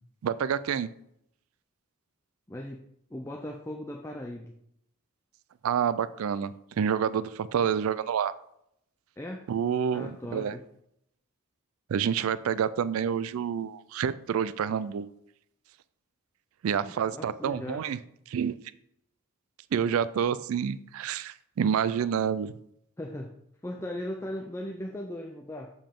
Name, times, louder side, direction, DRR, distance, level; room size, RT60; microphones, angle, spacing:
voice 1, 0.2-0.9 5.6-6.5 6.8-8.3 9.5-10.5 11.9-15.1 16.6-18.0 18.3-18.6 19.7-22.5, right 8 dB, 75° right, 15 dB, 0.3 m, -28 dB
voice 2, 2.5-2.8 3.1-4.6 9.2-9.5 9.9-10.6 16.8-17.9 23.0-23.4 23.6-25.7, left 1 dB, 10° left, 3 dB, 0.4 m, -38 dB
6.7 x 5.3 x 3.7 m, 0.75 s
head